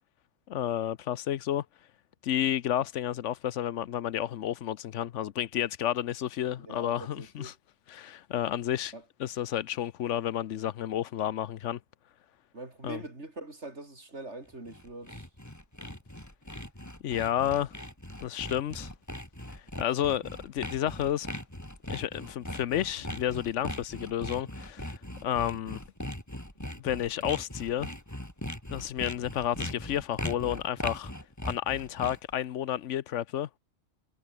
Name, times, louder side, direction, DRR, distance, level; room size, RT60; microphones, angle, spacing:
voice 1, 0.5-1.6 2.2-7.5 7.9-8.9 9.2-11.8 12.8-13.0 17.0-17.7 18.2-18.9 19.8-21.3 21.9-25.8 26.8-27.9 28.7-31.1 31.4-33.6, left 11 dB, 75° left, 1.0 m, -31 dB
voice 2, 6.6-7.5 8.9-9.0 12.5-15.3, right 2 dB, 65° right, 5.2 m, -43 dB
Sawing, 14.5-32.3, left 1 dB, 15° left, 4.0 m, -39 dB
omnidirectional pair, 1.2 m